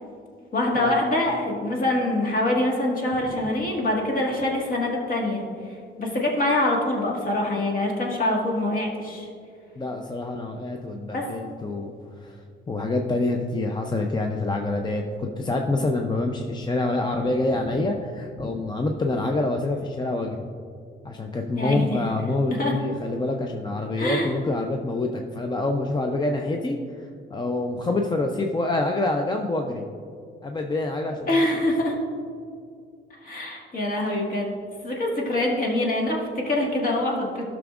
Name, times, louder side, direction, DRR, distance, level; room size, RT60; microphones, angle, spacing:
voice 1, 0.5-5.4 6.0-9.3 11.1-11.3 21.6-22.0 22.6-22.7 24.0-24.3 31.3-32.0 33.2-34.5 34.8-37.4, left 1 dB, 45° left, -1 dB, 1.7 m, -24 dB
voice 2, 9.8-12.4 12.7-20.5 21.0-26.8 27.3-29.8 30.4-31.4, left 2 dB, 20° left, 3 dB, 0.5 m, -26 dB
12.0 x 6.0 x 2.4 m, 2.3 s
cardioid pair, 90°, 20 cm